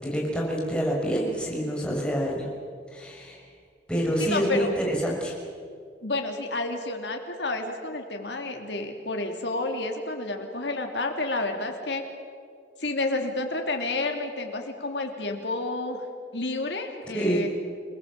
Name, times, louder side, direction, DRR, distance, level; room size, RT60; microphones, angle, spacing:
voice 1, 0.0-2.5 2.9-3.4 3.9-5.3 17.1-17.4, equal, 5° left, -3 dB, 6.0 m, -27 dB
voice 2, 4.2-4.8 6.0-12.0 12.8-16.0 16.3-17.5, left 2 dB, 75° left, 4 dB, 3.1 m, -30 dB
28.5 x 19.5 x 7.6 m, 2.2 s
head